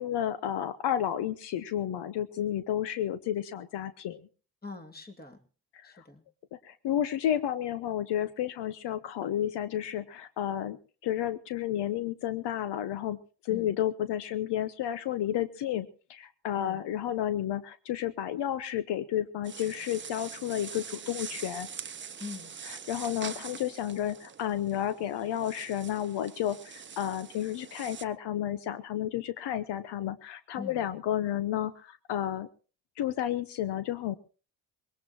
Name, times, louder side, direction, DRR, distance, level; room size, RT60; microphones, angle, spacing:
voice 1, 0.0-4.2 5.8-6.0 6.6-10.8 11.0-13.2 13.4-21.7 22.9-32.5 33.0-34.1, left 11 dB, 75° left, 13 dB, 0.9 m, -31 dB
voice 2, 4.6-5.4 5.8-6.2 13.5-13.8 16.6-16.8 22.2-22.5 30.6-30.9, left 4 dB, 20° left, 5 dB, 2.3 m, -43 dB
sound 1, 19.4-28.0, right 7 dB, 25° right, 0.8 m, -44 dB
21.5 x 18.0 x 2.9 m, 0.36 s
cardioid pair, 85°, 41 cm